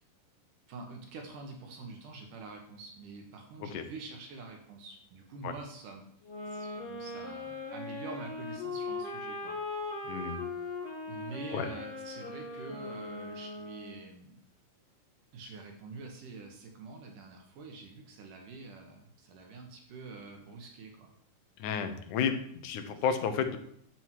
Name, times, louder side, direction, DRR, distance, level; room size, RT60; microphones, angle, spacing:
voice 1, 0.7-6.0 6.5-9.6 9.9-10.2 11.1-14.4 15.3-21.1, right 3 dB, 75° right, 2 dB, 2.9 m, -46 dB
sound 1, 6.2-14.1, left 3 dB, 50° left, 2.4 m, -39 dB
voice 2, 10.0-10.5 11.5-11.7 21.6-23.6, left 7 dB, 75° left, 7 dB, 2.4 m, -32 dB
10.5 x 7.7 x 4.7 m, 0.68 s
omnidirectional pair, 3.8 m